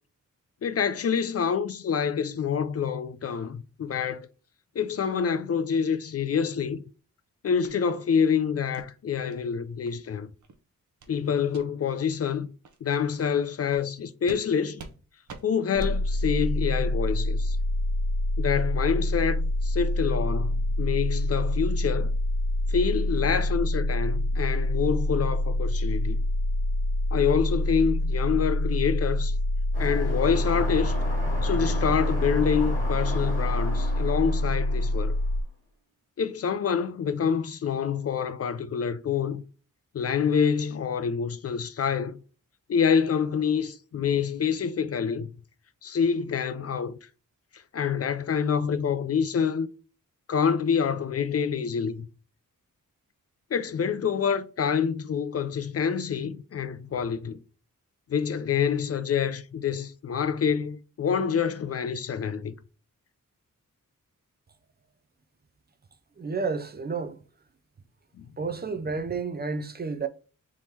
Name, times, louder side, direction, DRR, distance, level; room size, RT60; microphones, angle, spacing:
voice 1, 0.6-4.3 4.8-6.8 7.4-10.3 11.1-12.5 12.8-14.9 15.4-17.6 18.4-22.1 22.7-26.2 27.1-29.3 29.8-31.0 31.4-35.2 36.2-39.4 39.9-42.2 42.7-45.3 45.8-47.0 47.7-49.7 50.3-52.1 53.5-57.4 58.1-62.5 68.2-68.3, left 7 dB, 50° left, 0.4 m, -27 dB
sound 1, 7.6-7.8 8.2-8.3 8.7-8.9 9.3-9.4 9.8-10.0 10.4-10.5 11.0-11.2 11.5-11.6 12.1-12.2 12.6-12.8 13.2-13.3 13.7-13.9 14.3-14.4 14.8-15.0 15.3-15.4 15.8-16.0, right 4 dB, 60° right, 0.8 m, -45 dB
sound 2, 15.8-35.4, left 1 dB, 75° left, 1.4 m, -26 dB
sound 3, 29.7-35.3, left 1 dB, 25° left, 2.0 m, -37 dB
voice 2, 66.2-67.2 68.4-70.1, right 4 dB, 30° right, 0.4 m, -31 dB
3.6 x 3.0 x 4.2 m
wide cardioid pair, 110°, 33 cm